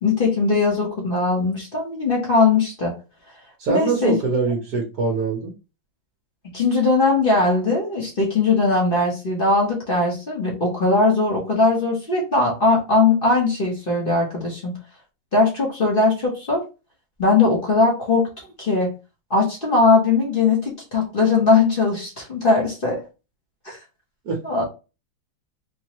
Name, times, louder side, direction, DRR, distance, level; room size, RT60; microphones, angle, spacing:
voice 1, 0.0-2.9 3.7-4.1 6.5-14.8 15.3-16.6 17.2-18.3 18.6-18.9 19.3-23.0 23.6-23.8 24.4-24.6, left 3 dB, 40° left, -3 dB, 0.8 m, -19 dB
voice 2, 3.6-5.5 24.2-24.4, right 4 dB, 55° right, -2 dB, 1.2 m, -23 dB
4.4 x 2.2 x 2.9 m, 0.30 s
omnidirectional pair, 2.3 m